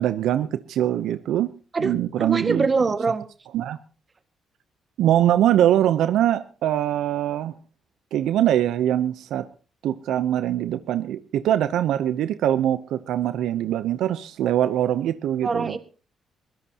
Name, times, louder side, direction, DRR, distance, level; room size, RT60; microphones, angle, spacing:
voice 1, 0.0-1.5 1.8-2.7 3.5-3.8 5.0-7.5 8.1-9.5 9.8-15.8, right 11 dB, 80° right, 12 dB, 0.7 m, -23 dB
voice 2, 1.7-3.2 15.4-15.8, right 4 dB, 35° right, 9 dB, 1.7 m, -24 dB
22.0 x 16.0 x 2.9 m, 0.37 s
cardioid pair, 90°, 0 cm